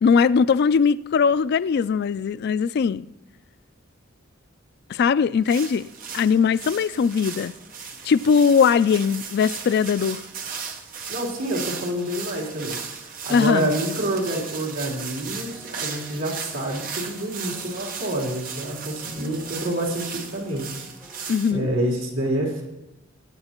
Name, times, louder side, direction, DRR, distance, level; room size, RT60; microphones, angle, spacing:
voice 1, 0.0-3.1 4.9-5.9 6.1-7.5 8.0-10.2 13.3-13.7 21.3-21.7, left 6 dB, 55° left, 0.3 m, -20 dB
sound 1, 5.4-21.5, right 6 dB, 45° right, 1.0 m, -36 dB
voice 2, 11.1-20.9 21.5-22.6, right 1 dB, 75° right, 3.5 m, -27 dB
sound 2, 15.4-21.4, left 1 dB, 5° left, 3.0 m, -50 dB
20.5 x 9.6 x 3.0 m
head